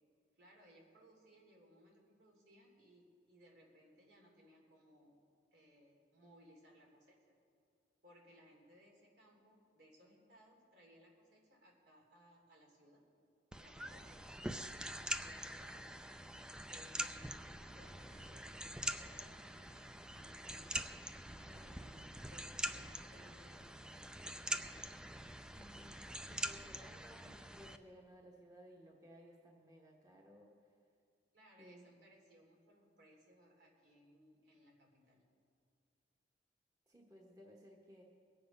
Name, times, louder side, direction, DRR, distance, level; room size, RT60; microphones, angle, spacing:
voice 1, 0.3-5.2 5.5-7.3 8.0-13.0 13.5-14.3 15.1-16.0 16.7-20.8 21.4-24.8 31.3-35.2, equal, 70° right, -1 dB, 3.2 m, -65 dB
sound 1, 13.5-27.8, right 1 dB, 5° right, 0.4 m, -44 dB
voice 2, 21.4-21.8 25.6-26.0 26.2-30.5 31.6-31.9 36.9-38.0, equal, 20° right, -1 dB, 1.3 m, -59 dB
23.0 x 7.8 x 5.3 m, 2.2 s
head